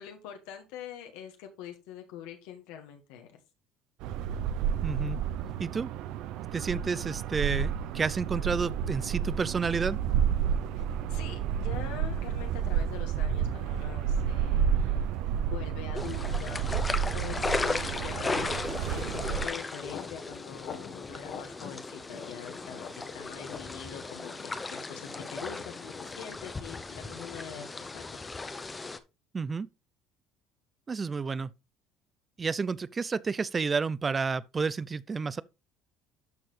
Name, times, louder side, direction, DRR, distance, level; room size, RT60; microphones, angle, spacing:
voice 1, 0.0-3.4 10.8-10.9 11.1-15.0 15.4-16.7 17.1-28.2, left 9 dB, 85° left, 1.5 m, -44 dB
sound 1, 4.0-19.5, right 8 dB, 70° right, 0.6 m, -30 dB
voice 2, 4.8-5.2 5.6-5.9 6.5-10.0 29.3-29.7 30.9-31.5 32.4-35.4, right 5 dB, 25° right, 0.4 m, -30 dB
sound 2, 16.0-29.0, left 3 dB, 20° left, 0.7 m, -36 dB
Cow Grazing, 19.6-26.2, left 7 dB, 55° left, 1.3 m, -46 dB
12.5 x 4.3 x 3.2 m
cardioid pair, 115°, 0 cm